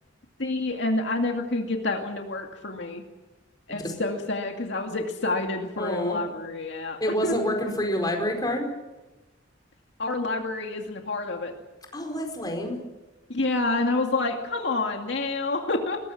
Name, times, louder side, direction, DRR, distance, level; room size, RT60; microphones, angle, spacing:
voice 1, 0.4-3.0 3.7-7.4 10.0-11.5 13.3-16.0, left 2 dB, 65° left, 2 dB, 2.3 m, -28 dB
voice 2, 5.8-6.2 7.0-8.7 11.9-12.8, equal, 20° left, 3 dB, 4.8 m, -28 dB
22.0 x 20.0 x 7.3 m, 1.1 s
head